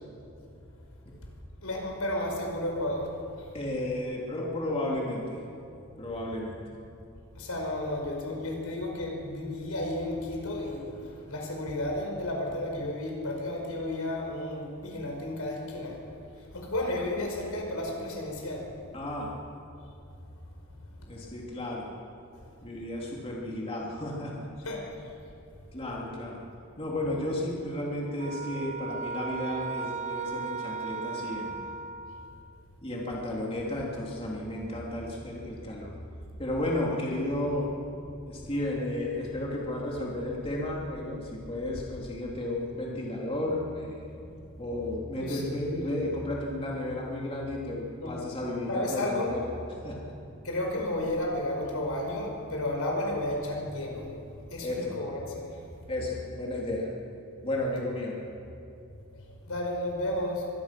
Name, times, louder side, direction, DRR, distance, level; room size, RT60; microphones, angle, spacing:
voice 1, 1.6-3.5 7.4-16.0 16.4-18.7 24.6-25.1 45.1-45.7 48.0-48.2 48.7-49.3 50.4-54.1 54.5-55.6 59.1-60.4, left 1 dB, 80° left, 0 dB, 5.2 m, -33 dB
voice 2, 3.5-5.4 6.0-6.6 18.9-19.3 21.1-21.9 22.6-24.5 25.7-26.4 26.8-31.6 32.8-35.9 36.4-37.7 38.3-44.1 44.6-49.5 49.8-50.1 54.6-54.9 55.9-56.9 57.4-58.2, left 1 dB, 25° left, -3 dB, 3.1 m, -33 dB
sound 1, 28.2-32.6, right 4 dB, 30° right, 0.6 m, -36 dB
24.0 x 18.5 x 6.1 m, 2.7 s
head